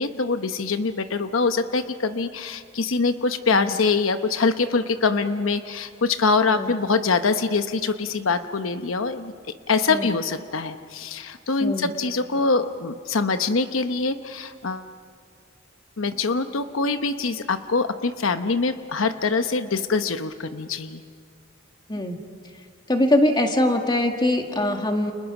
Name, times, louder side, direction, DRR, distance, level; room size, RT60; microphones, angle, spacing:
voice 1, 0.0-9.3 9.7-14.9 16.0-21.0, left 4 dB, 90° left, 9 dB, 1.0 m, -24 dB
voice 2, 22.9-25.1, left 1 dB, 20° left, 4 dB, 1.8 m, -22 dB
30.0 x 29.5 x 6.1 m, 2.2 s
head